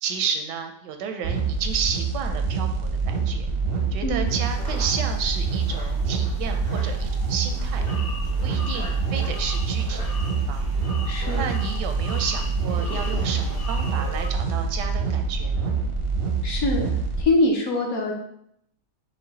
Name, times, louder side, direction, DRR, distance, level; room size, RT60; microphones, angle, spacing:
voice 1, 0.0-3.5 3.9-7.8 8.4-10.7 11.3-15.7, right 6 dB, 85° right, 5 dB, 1.2 m, -31 dB
sound 1, 1.2-17.2, right 4 dB, 60° right, 0.6 m, -26 dB
sound 2, 4.3-14.3, left 1 dB, 90° left, 1.9 m, -39 dB
voice 2, 11.1-11.4 16.4-16.9 17.2-18.1, left 2 dB, 65° left, 0 dB, 1.1 m, -23 dB
4.9 x 2.3 x 4.0 m, 0.71 s
omnidirectional pair, 1.8 m